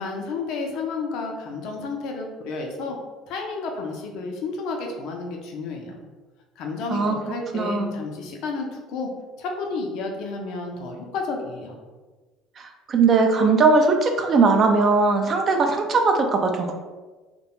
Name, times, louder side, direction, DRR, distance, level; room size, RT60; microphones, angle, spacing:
voice 1, 0.0-3.0 3.3-6.0 6.6-9.1 9.4-11.8, left 3 dB, 65° left, 1 dB, 0.5 m, -31 dB
voice 2, 7.5-7.9 12.9-16.7, right 4 dB, 40° right, 4 dB, 0.4 m, -19 dB
2.3 x 2.2 x 2.8 m, 1.3 s
hypercardioid pair, 75°, 0 cm